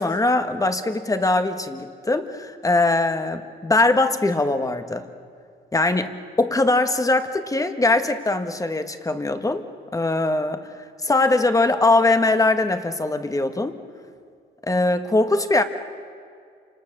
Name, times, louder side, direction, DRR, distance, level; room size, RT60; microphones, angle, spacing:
voice 1, 0.0-5.1 5.7-9.6 9.9-10.7 11.0-13.8 14.7-15.6, left 2 dB, 15° left, 8 dB, 1.6 m, -21 dB
29.0 x 26.5 x 6.8 m, 2.2 s
cardioid pair, 90°, 20 cm